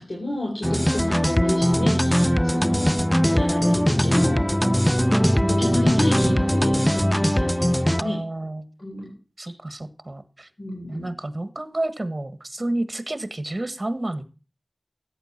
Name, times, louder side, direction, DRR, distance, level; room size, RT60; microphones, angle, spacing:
voice 1, 0.0-3.0 3.3-4.4 5.0-8.2 8.8-9.1 10.6-11.1, left 1 dB, 70° left, -1 dB, 4.0 m, -30 dB
sound 1, 0.6-8.0, equal, 5° left, 0.5 m, -20 dB
voice 2, 1.8-2.6 5.4-6.5 8.0-8.7 9.4-10.5 10.9-14.2, right 1 dB, 40° right, 13 dB, 1.4 m, -30 dB
14.0 x 8.9 x 4.2 m, 0.34 s
wide cardioid pair, 50°, 0 cm